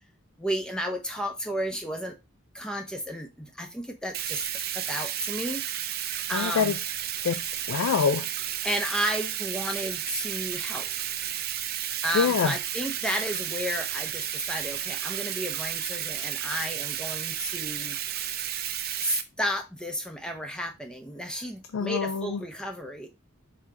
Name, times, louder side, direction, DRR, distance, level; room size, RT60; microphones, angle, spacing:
voice 1, 0.4-2.1 2.5-4.4 4.7-5.6 6.3-6.8 8.6-10.9 12.0-18.0 19.0-23.1, equal, 5° left, 0.6 m, -32 dB
Bathtub (filling or washing), 4.1-19.2, right 10 dB, 45° right, 0.4 m, -32 dB
voice 2, 6.3-6.7 7.2-8.3 12.1-12.5 21.7-22.4, left 6 dB, 80° left, 0.4 m, -25 dB
4.7 x 2.9 x 3.6 m
head